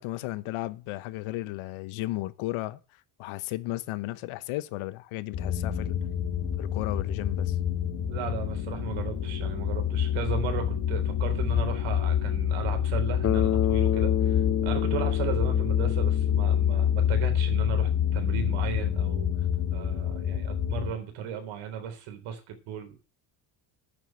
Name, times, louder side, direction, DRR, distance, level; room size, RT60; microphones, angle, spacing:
voice 1, 0.0-2.8 3.2-6.0 6.6-7.6, left 17 dB, 85° left, 1.1 m, -34 dB
sound 1, 5.3-20.9, left 9 dB, 50° left, 2.2 m, -27 dB
voice 2, 8.1-19.3 19.7-23.0, right 8 dB, 75° right, 3.9 m, -36 dB
Bass guitar, 13.2-17.2, left 10 dB, 30° left, 0.7 m, -30 dB
9.2 x 7.7 x 7.8 m
cardioid pair, 150°, 48 cm